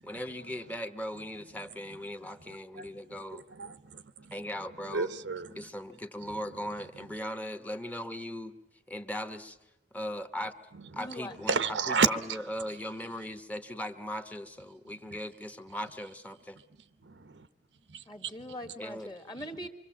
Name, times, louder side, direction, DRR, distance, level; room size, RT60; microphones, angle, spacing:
voice 1, 0.0-3.4 4.3-5.1 5.5-8.6 8.9-9.6 9.9-10.5 10.9-16.6 18.8-19.1, equal, 10° left, 1.0 m, -38 dB
voice 2, 2.5-4.4 4.9-5.7 11.5-12.1 15.1-15.2 17.0-17.5 17.9-18.3 18.6-18.7, right 5 dB, 90° right, 0.9 m, -32 dB
voice 3, 11.0-11.3 18.1-19.7, equal, 25° left, 1.7 m, -42 dB
25.0 x 24.5 x 7.4 m
head